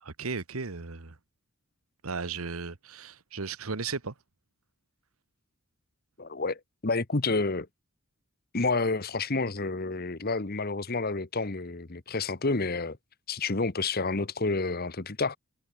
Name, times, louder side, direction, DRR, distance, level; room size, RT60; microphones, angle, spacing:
voice 1, 0.0-1.2 2.0-4.1, right 4 dB, 85° right, 1.4 m, -35 dB
voice 2, 6.2-7.7 8.5-13.0 13.3-15.4, left 3 dB, 45° left, 1.2 m, -29 dB
head